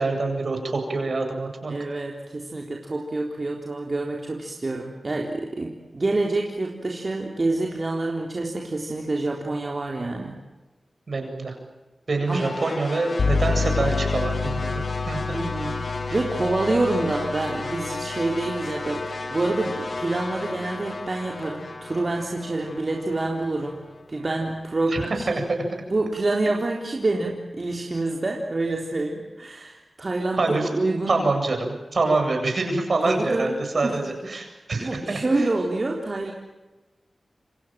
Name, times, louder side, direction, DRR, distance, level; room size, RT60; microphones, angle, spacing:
voice 1, 0.0-1.7 11.1-11.5 12.1-14.8 15.1-15.4 24.9-25.0 25.3-25.8 30.4-30.7 31.1-35.2, right 3 dB, 60° right, 4 dB, 8.0 m, -25 dB
voice 2, 1.7-10.4 12.3-12.5 15.3-23.8 24.1-25.2 25.9-31.2 33.0-34.2 34.8-36.3, right 2 dB, 45° right, 0 dB, 3.9 m, -27 dB
sound 1, 12.3-24.5, left 3 dB, 55° left, 3.0 m, -34 dB
sound 2, 13.2-20.9, left 4 dB, 75° left, 2.6 m, -30 dB
28.5 x 25.0 x 7.7 m, 1.1 s
cardioid pair, 55°, 0 cm